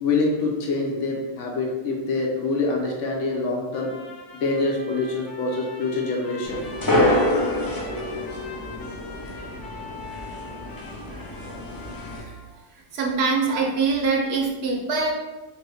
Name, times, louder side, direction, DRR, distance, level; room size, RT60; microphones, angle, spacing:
voice 1, 0.0-3.9 4.3-6.6, left 3 dB, 85° left, -1 dB, 1.0 m, -25 dB
Trumpet, 3.7-12.5, left 3 dB, 55° left, 0.8 m, -42 dB
sound 1, 6.5-12.2, left 1 dB, 30° left, 0.4 m, -26 dB
voice 2, 12.7-15.1, right 4 dB, 65° right, 0 dB, 0.9 m, -24 dB
2.7 x 2.6 x 3.4 m, 1.1 s
omnidirectional pair, 1.2 m